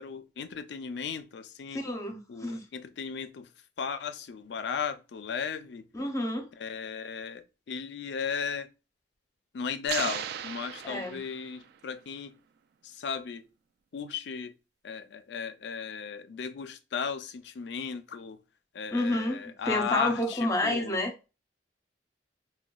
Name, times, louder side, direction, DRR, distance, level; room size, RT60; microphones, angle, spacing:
voice 1, 0.0-1.8 2.3-3.5 3.8-5.9 6.6-8.7 9.5-12.4 12.8-13.4 13.9-14.6 14.8-18.4 18.7-21.0, left 6 dB, 65° left, 0.4 m, -35 dB
voice 2, 1.7-2.6 5.9-6.5 10.8-11.2 18.9-21.1, left 1 dB, 20° left, 0.6 m, -29 dB
sound 1, 9.9-11.8, right 9 dB, 60° right, 0.3 m, -36 dB
4.8 x 2.2 x 2.2 m
head